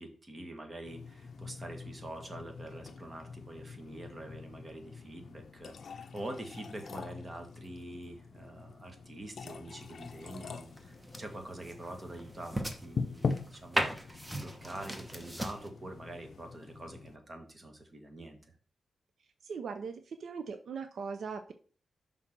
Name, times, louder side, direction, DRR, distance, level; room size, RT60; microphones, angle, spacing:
voice 1, 0.0-18.5, right 1 dB, 30° right, 4 dB, 1.6 m, -45 dB
sound 1, 0.8-17.2, left 4 dB, 65° left, 0.5 m, -43 dB
sound 2, 9.8-15.7, right 1 dB, 10° right, 1.0 m, -39 dB
voice 2, 19.4-21.5, right 5 dB, 75° right, 8 dB, 0.5 m, -40 dB
5.9 x 3.7 x 6.0 m, 0.43 s
cardioid pair, 90°, 0 cm